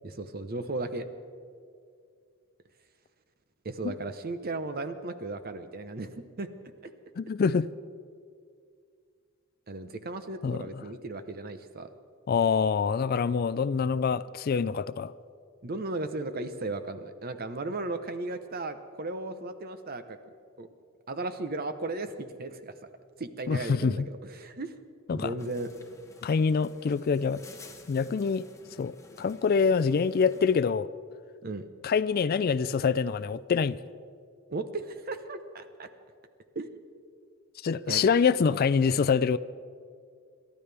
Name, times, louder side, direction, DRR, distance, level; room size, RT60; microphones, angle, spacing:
voice 1, 0.0-1.0 3.6-6.5 6.8-6.9 9.7-11.9 15.6-20.2 20.6-20.7 21.1-22.7 23.2-24.7 25.1-25.7 31.4-31.6 34.5-35.9 36.5-36.7 37.9-38.0, right 2 dB, 45° right, 10 dB, 0.9 m, -35 dB
voice 2, 7.2-7.7 10.4-10.8 12.3-15.1 23.5-24.1 25.1-25.3 26.2-27.4 27.9-28.5 28.8-30.9 31.8-33.8 37.6-39.4, left 5 dB, 45° left, 16 dB, 0.3 m, -25 dB
sound 1, 25.4-30.6, left 2 dB, 15° left, 1.2 m, -52 dB
28.0 x 12.5 x 3.4 m, 2.3 s
head